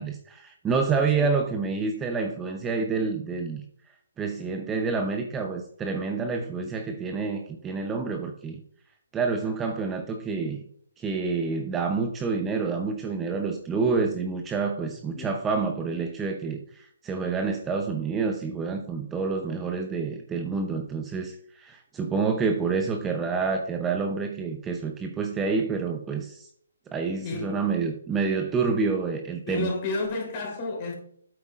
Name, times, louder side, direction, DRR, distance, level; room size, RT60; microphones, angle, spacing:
voice 1, 0.0-3.6 4.2-8.6 9.1-10.6 11.0-26.5 26.9-29.7, right 4 dB, 15° right, 0.7 m, -28 dB
voice 2, 1.0-1.3 15.1-15.3 27.0-27.6 29.5-30.9, left 3 dB, 35° left, 3.5 m, -32 dB
8.7 x 8.0 x 2.5 m
hypercardioid pair, 150°, 0 cm